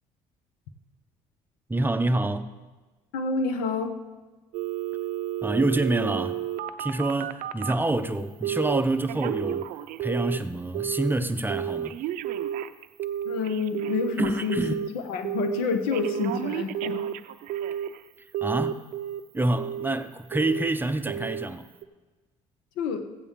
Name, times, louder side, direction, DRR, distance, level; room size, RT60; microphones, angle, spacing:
voice 1, 1.7-2.5 5.4-6.4 6.8-9.7 10.0-12.0 14.2-14.8 18.4-18.8 19.3-21.7, right 2 dB, 15° right, 0.7 m, -27 dB
voice 2, 3.1-3.9 13.2-14.6 14.9-17.1 22.8-23.1, left 5 dB, 85° left, 0.9 m, -28 dB
Telephone, 4.5-7.8 8.4-8.8 9.1-10.4 10.7-11.1 11.5-14.9 15.2-15.6 15.9-18.0 18.3-19.2 19.6-20.0 20.3-20.7 21.1-21.5 21.8-21.9, right 11 dB, 70° right, 0.5 m, -31 dB
15.0 x 8.3 x 3.7 m
supercardioid pair, 70°, 14 cm